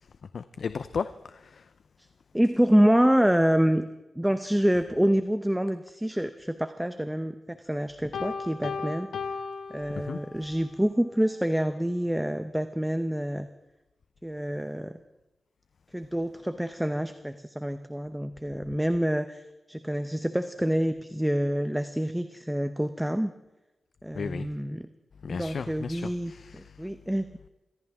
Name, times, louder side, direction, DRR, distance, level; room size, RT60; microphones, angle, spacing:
voice 1, 0.0-1.7 9.9-10.2 24.1-24.5 25.2-26.9, left 5 dB, 65° left, 0.6 m, -35 dB
voice 2, 2.3-3.9 4.2-9.1 9.7-13.5 14.2-14.9 15.9-23.3 24.0-24.9 25.3-27.3, equal, 5° right, 0.8 m, -27 dB
Piano, 8.1-10.5, left 5 dB, 85° left, 1.0 m, -35 dB
24.0 x 16.5 x 3.6 m
wide cardioid pair, 95°, 0 cm